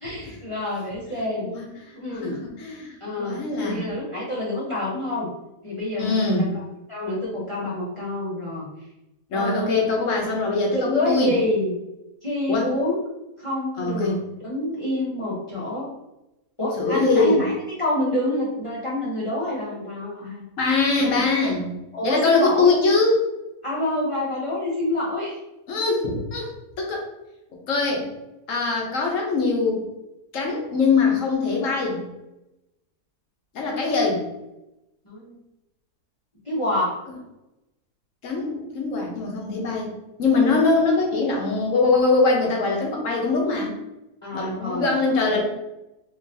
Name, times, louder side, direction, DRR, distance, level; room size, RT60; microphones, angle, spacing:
voice 1, 0.0-1.5 2.0-2.4 3.0-5.3 5.6-6.5 6.9-8.7 9.3-10.0 10.7-11.7 12.2-13.0 13.4-15.9 16.6-20.5 21.0-21.2 21.9-22.7 23.6-25.4 33.7-34.2 35.0-35.4 36.4-37.0 44.2-44.9 45.3-45.4, left 1 dB, 25° left, -7 dB, 0.7 m, -27 dB
voice 2, 1.4-1.7 2.1-3.9 6.0-6.5 9.3-11.3 12.5-12.7 13.8-14.2 16.8-17.4 20.6-21.7 22.0-23.2 25.7-26.5 26.8-27.1 27.7-28.1 28.5-29.8 30.3-32.0 33.5-34.2 38.2-39.9 40.2-43.7 44.3-45.4, left 3 dB, 60° left, 0 dB, 1.0 m, -22 dB
3.8 x 2.9 x 2.7 m, 0.93 s
omnidirectional pair, 1.7 m